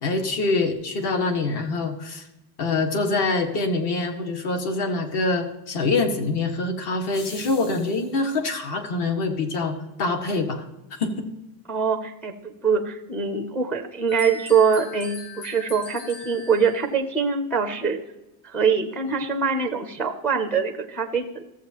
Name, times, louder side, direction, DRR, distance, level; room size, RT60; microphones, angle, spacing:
voice 1, 0.0-2.3 2.6-10.6 10.9-11.3, left 3 dB, 50° left, 5 dB, 1.5 m, -25 dB
sound 1, 7.0-8.3, left 2 dB, 70° left, 3.7 m, -43 dB
voice 2, 11.7-18.0 18.4-21.4, right 6 dB, 5° left, 5 dB, 0.4 m, -23 dB
sound 2, 14.1-16.9, left 3 dB, 30° left, 1.3 m, -40 dB
14.5 x 7.6 x 2.8 m, 0.98 s
cardioid pair, 155°, 49 cm